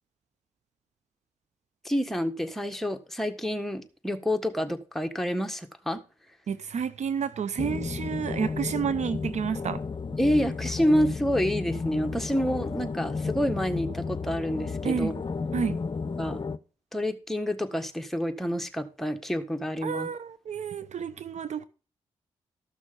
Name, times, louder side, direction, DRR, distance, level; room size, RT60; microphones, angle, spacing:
voice 1, 1.8-6.0 10.2-15.1 16.2-16.4 16.9-20.1, equal, ahead, 1.6 m, -28 dB
voice 2, 6.5-9.8 14.8-15.1 15.5-15.8 19.8-21.7, right 7 dB, 65° right, 0.8 m, -30 dB
sound 1, 7.6-16.6, left 4 dB, 35° left, 0.7 m, -33 dB
13.5 x 6.2 x 5.3 m
supercardioid pair, 45°, 13 cm